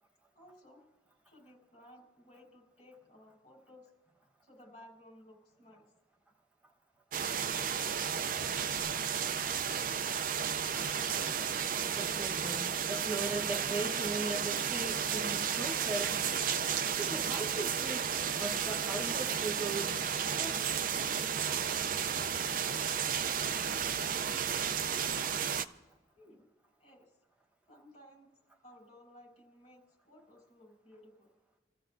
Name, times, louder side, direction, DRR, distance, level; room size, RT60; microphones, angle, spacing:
voice 1, 0.3-0.8 1.2-3.9 4.4-5.9 26.1-26.5 26.8-27.2 27.7-28.4 28.6-31.3, left 1 dB, 35° left, -1 dB, 6.1 m, -57 dB
sound 1, 7.1-25.7, right 7 dB, 50° right, 0.5 m, -33 dB
voice 2, 11.8-16.1 16.9-18.1 18.4-19.9 20.4-20.7, right 2 dB, 10° right, 0 dB, 1.1 m, -39 dB
29.0 x 14.5 x 2.6 m, 1.2 s
head